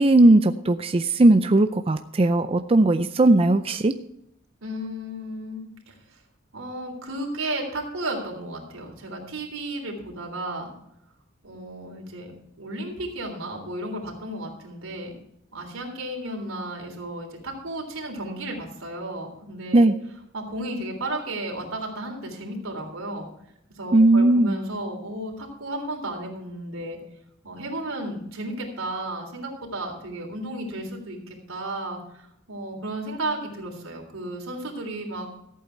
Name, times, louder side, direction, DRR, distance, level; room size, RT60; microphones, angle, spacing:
voice 1, 0.0-3.9 19.7-19.9 23.9-24.6, right 2 dB, 30° right, 9 dB, 0.5 m, -18 dB
voice 2, 4.6-5.9 6.5-10.7 11.4-12.3 12.6-15.1 15.5-19.9 20.3-23.3 23.8-27.0 27.4-35.4, right 1 dB, 90° right, 2 dB, 3.5 m, -33 dB
14.5 x 8.5 x 4.6 m, 0.77 s
head